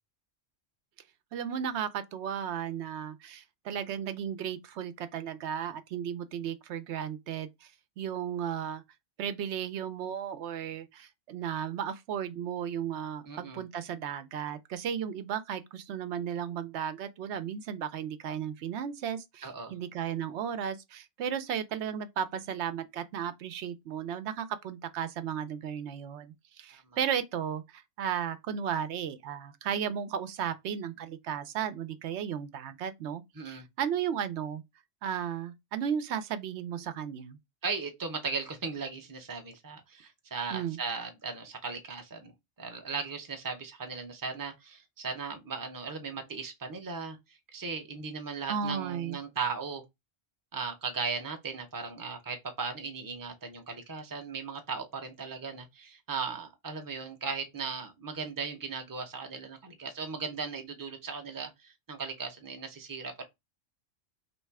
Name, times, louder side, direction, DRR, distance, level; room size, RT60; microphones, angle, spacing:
voice 1, 1.3-7.7 8.0-8.8 9.2-34.6 35.0-37.4 40.5-40.8 48.5-49.2, right 8 dB, 80° right, 0.9 m, -35 dB
voice 2, 13.2-13.6 19.4-19.7 26.7-26.8 33.4-33.7 37.6-47.2 47.5-49.8 50.5-63.2, right 5 dB, 20° right, 0.6 m, -37 dB
3.2 x 2.9 x 4.6 m
omnidirectional pair, 1.1 m